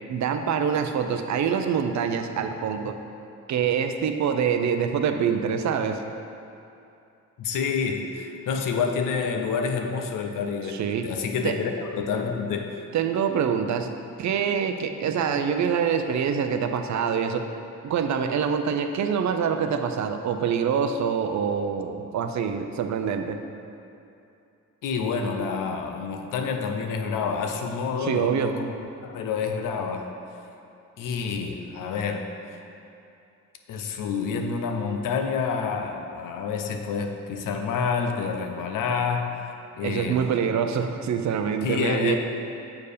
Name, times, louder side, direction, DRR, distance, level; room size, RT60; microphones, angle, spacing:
voice 1, 0.1-3.0 3.5-6.0 10.7-11.1 11.4-11.5 12.9-13.9 14.2-17.4 17.8-23.4 28.0-28.5 39.8-42.2, right 7 dB, 65° right, 7 dB, 0.6 m, -25 dB
voice 2, 7.4-12.8 24.8-28.7 29.0-30.1 31.0-32.3 33.7-39.4 39.7-40.3 41.6-42.2, left 5 dB, 85° left, 4 dB, 0.7 m, -28 dB
7.0 x 4.6 x 5.0 m, 2.7 s
cardioid pair, 90°, 31 cm